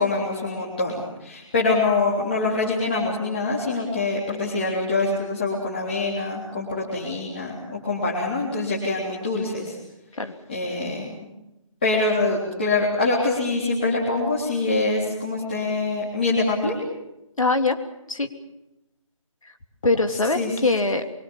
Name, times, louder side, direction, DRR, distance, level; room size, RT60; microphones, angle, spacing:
voice 1, 0.0-9.8 10.5-11.1 11.8-16.8 20.4-20.5, left 3 dB, 20° left, -5 dB, 3.5 m, -24 dB
voice 2, 17.4-17.8 18.1-18.3 19.4-19.5 19.8-21.0, left 3 dB, 75° left, 7 dB, 3.0 m, -22 dB
24.5 x 23.5 x 7.3 m, 0.93 s
figure-of-eight pair, 180°, 17 cm